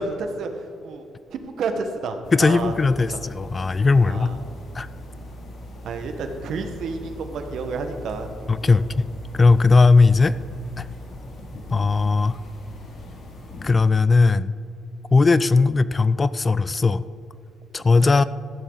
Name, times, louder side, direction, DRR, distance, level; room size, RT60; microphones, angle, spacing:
voice 1, 0.0-3.2 4.0-4.4 5.8-8.3 8.6-8.9, right 4 dB, 70° right, 6 dB, 1.3 m, -30 dB
sound 1, 2.2-13.7, left 1 dB, 60° left, 2.6 m, -39 dB
voice 2, 2.3-4.3 4.7-4.9 8.5-9.1 9.3-10.4 10.8-10.9 11.7-12.4 13.6-14.5 15.1-17.0 17.7-18.2, left 4 dB, 30° left, 16 dB, 0.4 m, -18 dB
14.0 x 12.0 x 4.0 m, 2.6 s
cardioid pair, 90°, 0 cm